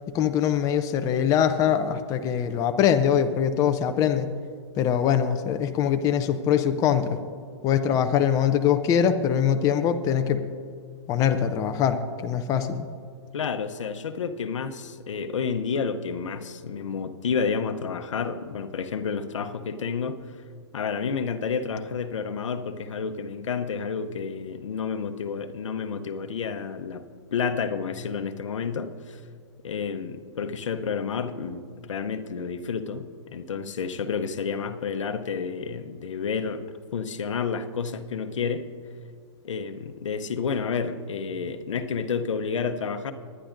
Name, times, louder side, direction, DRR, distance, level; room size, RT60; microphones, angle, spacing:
voice 1, 0.1-4.3 4.8-7.2 7.6-10.4 11.1-12.9, left 8 dB, 20° left, 8 dB, 0.5 m, -23 dB
voice 2, 13.3-20.4 20.7-27.0 27.3-29.2 29.6-36.6 36.9-38.7 39.4-43.1, left 5 dB, 85° left, 9 dB, 0.8 m, -30 dB
20.5 x 10.0 x 2.6 m, 2.1 s
hypercardioid pair, 140°, 16 cm